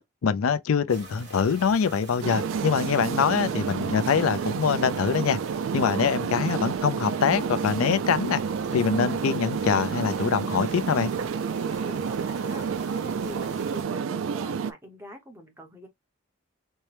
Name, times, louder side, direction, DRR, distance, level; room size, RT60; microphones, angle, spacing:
voice 1, 0.2-5.4 5.7-8.4 8.7-11.1, left 6 dB, 85° left, 0.4 m, -24 dB
sound 1, 0.9-13.8, right 2 dB, 55° right, 2.2 m, -46 dB
sound 2, 2.2-14.7, right 6 dB, 70° right, 0.4 m, -29 dB
voice 2, 11.9-12.7 13.0-15.9, equal, 10° right, 0.9 m, -44 dB
4.4 x 2.1 x 3.2 m
head